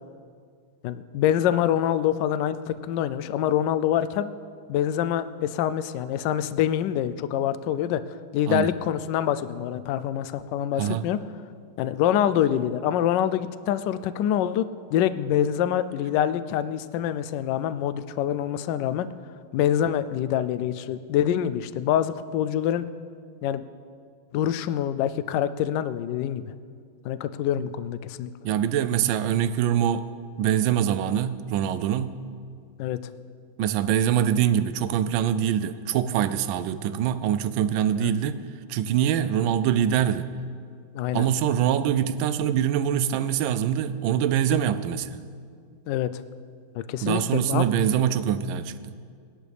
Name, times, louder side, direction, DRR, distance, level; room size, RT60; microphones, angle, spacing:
voice 1, 0.8-4.3 4.7-8.0 8.3-11.2 11.8-14.6 14.9-19.1 19.5-22.8 23.4-23.6 24.3-26.4 27.0-28.3 32.8-33.0 38.0-38.1 40.9-41.2 45.9-46.2 46.7-47.7, left 10 dB, 75° left, 1.0 m, -25 dB
voice 2, 28.4-30.0 30.4-32.2 33.6-38.4 38.7-40.3 41.1-45.2 47.0-49.0, right 9 dB, 75° right, 1.3 m, -24 dB
20.0 x 11.0 x 3.4 m
omnidirectional pair, 2.3 m